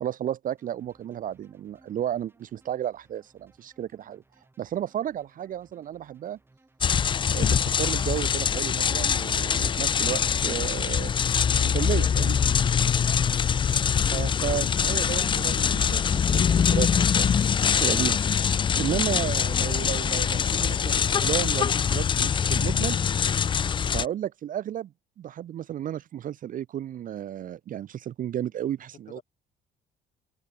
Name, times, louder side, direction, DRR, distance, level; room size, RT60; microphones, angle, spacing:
voice 1, 0.0-4.2 4.6-6.4 7.3-11.1 11.6-12.4 14.1-17.3 17.8-23.0 23.9-24.9 25.2-29.2, right 11 dB, 50° right, 0.6 m, -33 dB
sound 1, 0.6-7.4, right 2 dB, 10° right, 4.3 m, -63 dB
sound 2, 6.8-24.1, left 7 dB, 25° left, 0.4 m, -23 dB
voice 2, 28.8-29.2, left 8 dB, 45° left, 5.0 m, -51 dB
open air
cardioid pair, 125°, 19 cm